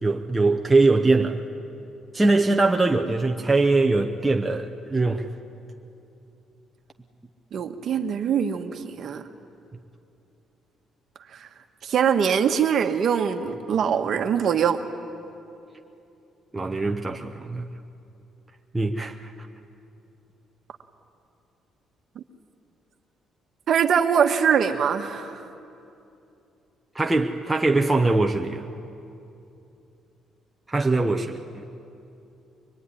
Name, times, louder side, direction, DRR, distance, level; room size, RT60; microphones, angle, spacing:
voice 1, 0.0-1.4 2.1-5.3 16.5-17.7 18.7-19.3 26.9-28.6 30.7-31.6, right 3 dB, 10° right, 2 dB, 0.7 m, -22 dB
voice 2, 7.5-9.2 11.3-11.5 11.8-14.8 22.1-22.2 23.7-25.4, right 7 dB, 45° right, 7 dB, 1.3 m, -23 dB
24.0 x 21.5 x 9.8 m, 2.7 s
cardioid pair, 180°, 0 cm